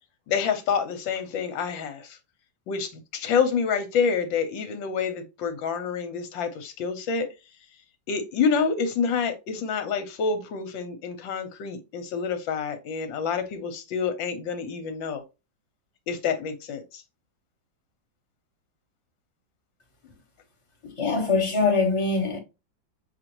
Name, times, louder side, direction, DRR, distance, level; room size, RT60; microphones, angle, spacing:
voice 1, 0.3-2.2 2.7-7.3 8.1-15.2 16.1-17.0, left 6 dB, 80° left, 1.6 m, -27 dB
voice 2, 20.8-22.4, left 4 dB, 20° left, 1.0 m, -23 dB
6.1 x 2.8 x 3.0 m
omnidirectional pair, 2.0 m